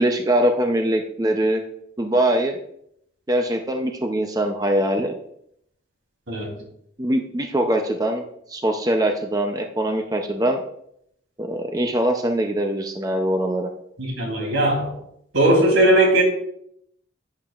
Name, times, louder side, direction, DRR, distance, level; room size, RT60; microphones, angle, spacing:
voice 1, 0.0-1.6 2.0-2.6 3.3-5.1 7.0-8.2 8.5-10.6 11.4-13.7, right 1 dB, 20° right, 4 dB, 0.5 m, -22 dB
voice 2, 14.0-14.9 15.3-16.2, right 1 dB, 85° right, 0 dB, 3.2 m, -18 dB
11.0 x 8.7 x 2.4 m, 0.73 s
head